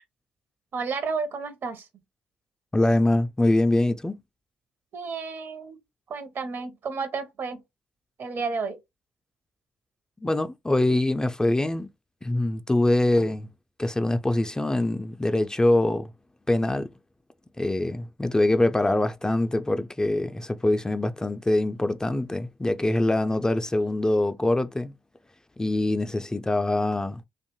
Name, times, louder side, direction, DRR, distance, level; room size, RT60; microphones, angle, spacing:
voice 1, 0.7-1.8 4.9-5.8 6.1-7.6 8.2-8.8, right 4 dB, 55° right, 0.7 m, -31 dB
voice 2, 2.7-4.2 10.2-11.9 12.2-13.5 13.8-16.1 16.5-16.9 17.6-24.9 25.6-27.2, left 1 dB, 15° left, 0.3 m, -24 dB
2.5 x 2.2 x 2.9 m
hypercardioid pair, 45°, 5 cm